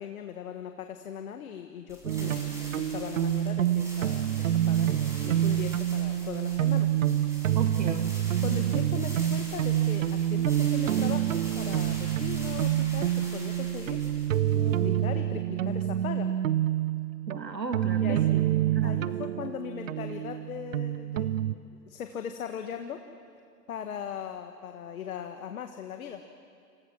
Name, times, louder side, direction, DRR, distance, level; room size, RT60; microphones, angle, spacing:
voice 1, 0.0-7.4 7.8-8.0 8.4-14.2 14.6-16.3 18.0-18.3 18.8-23.0 23.7-26.2, left 8 dB, 55° left, 6 dB, 1.7 m, -39 dB
sound 1, 1.9-15.0, equal, 5° right, 6.7 m, -45 dB
sound 2, 2.0-21.6, right 12 dB, 50° right, 0.8 m, -27 dB
voice 2, 7.5-8.1 17.3-18.5 18.7-19.1, right 4 dB, 80° right, 5 dB, 2.3 m, -35 dB
29.0 x 27.5 x 6.2 m, 2.3 s
figure-of-eight pair, 115°, 50 cm